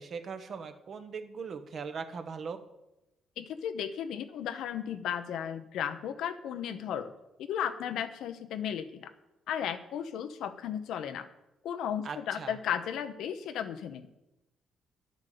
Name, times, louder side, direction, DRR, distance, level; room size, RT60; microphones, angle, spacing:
voice 1, 0.0-2.6 12.0-12.6, right 5 dB, 55° right, 8 dB, 1.2 m, -40 dB
voice 2, 3.4-7.1 7.4-9.1 9.5-11.3 11.6-14.1, left 9 dB, 80° left, 9 dB, 0.9 m, -35 dB
10.5 x 8.2 x 6.8 m, 0.95 s
cardioid pair, 90°, 0 cm